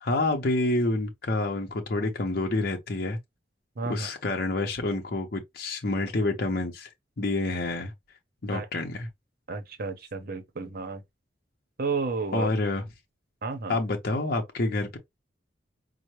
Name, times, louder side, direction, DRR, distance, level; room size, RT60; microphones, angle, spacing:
voice 1, 0.0-3.2 3.9-6.9 7.2-7.9 8.4-9.1 12.3-12.8 13.7-15.0, left 2 dB, 55° left, 0.7 m, -28 dB
voice 2, 3.8-4.1 8.5-8.7 9.5-11.0 11.8-12.5 13.4-13.8, right 4 dB, 55° right, 0.8 m, -32 dB
5.5 x 2.1 x 3.1 m
head